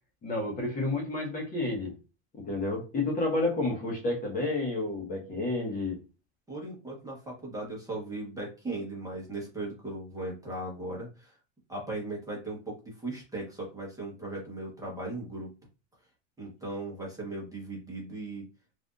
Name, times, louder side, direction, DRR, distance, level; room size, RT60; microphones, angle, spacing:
voice 1, 0.2-1.9 2.4-6.0 16.4-16.5, left 2 dB, 25° left, 1.1 m, -30 dB
voice 2, 6.5-11.4 11.7-15.5 16.4-18.5, right 2 dB, 10° right, 1.1 m, -38 dB
3.3 x 2.6 x 2.5 m
supercardioid pair, 130°, 35 cm